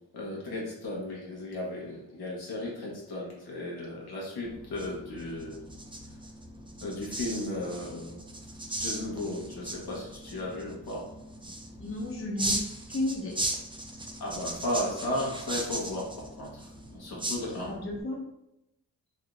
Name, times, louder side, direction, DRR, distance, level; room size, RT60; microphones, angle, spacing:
voice 1, 0.1-5.6 6.8-8.2 8.8-11.1 14.2-16.6 16.9-17.7, left 1 dB, 70° left, -3 dB, 1.1 m, -35 dB
sound 1, 4.4-18.0, right 1 dB, 10° right, 0.5 m, -38 dB
voice 2, 11.8-13.3 17.7-18.3, left 2 dB, 35° left, -3 dB, 1.0 m, -33 dB
3.3 x 2.8 x 2.4 m, 0.85 s
cardioid pair, 45°, 40 cm